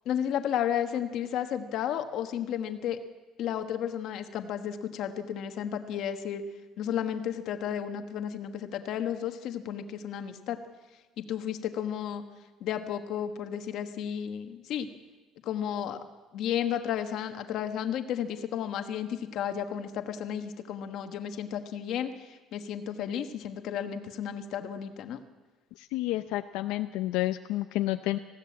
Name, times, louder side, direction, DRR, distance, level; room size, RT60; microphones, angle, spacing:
voice 1, 0.0-3.0 3.4-6.4 6.8-10.6 11.2-12.2 12.6-14.9 15.4-16.0 16.3-25.2, left 9 dB, 50° left, 7 dB, 1.3 m, -33 dB
voice 2, 25.8-28.2, left 16 dB, 80° left, 7 dB, 0.6 m, -30 dB
20.0 x 15.5 x 8.6 m, 1.3 s
cardioid pair, 170°, 0 cm